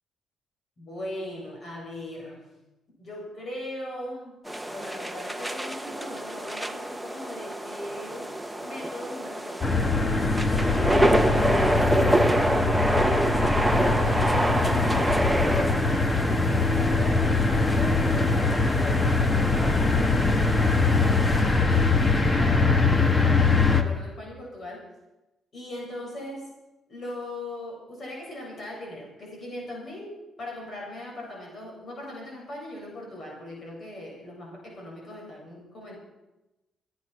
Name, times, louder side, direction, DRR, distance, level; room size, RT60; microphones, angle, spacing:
voice 1, 0.8-2.5 3.0-4.4 4.7-8.3 8.6-10.1 10.5-13.3 13.8-15.0 15.4-16.2 16.5-24.9 25.5-26.5 26.9-36.0, left 1 dB, 45° left, -1 dB, 7.5 m, -39 dB
sound 1, 4.5-21.4, right 1 dB, ahead, 1.2 m, -28 dB
sound 2, 9.6-23.8, left 3 dB, 25° left, 1.7 m, -22 dB
25.5 x 9.0 x 6.1 m, 0.98 s
cardioid pair, 90°, 0 cm